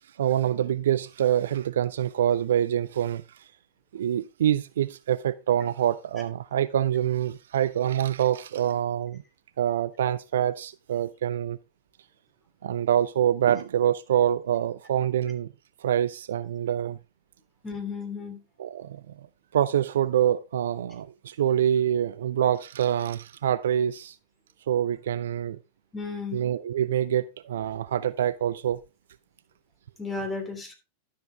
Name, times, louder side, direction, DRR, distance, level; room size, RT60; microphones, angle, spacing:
voice 1, 0.2-3.2 3.9-9.2 9.6-11.6 12.6-15.5 15.8-17.0 18.6-19.1 19.5-24.1 24.7-25.6 26.3-28.8, right 10 dB, 60° right, 0.4 m, -25 dB
voice 2, 17.6-18.4 25.9-26.4 30.0-30.7, left 4 dB, 15° left, 3.1 m, -33 dB
12.0 x 7.2 x 3.3 m
figure-of-eight pair, 90°, 0 cm